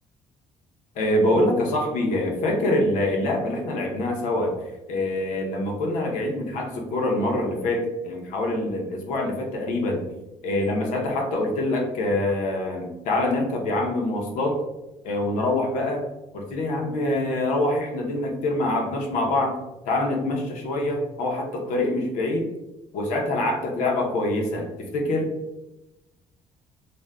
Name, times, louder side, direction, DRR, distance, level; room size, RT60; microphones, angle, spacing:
voice 1, 1.0-4.5 4.9-10.0 10.4-14.6 15.0-16.1 16.3-19.6 19.8-22.5 22.9-25.3, left 1 dB, 85° left, 1 dB, 0.7 m, -25 dB
2.5 x 2.1 x 3.3 m, 0.97 s
cardioid pair, 155°, 13 cm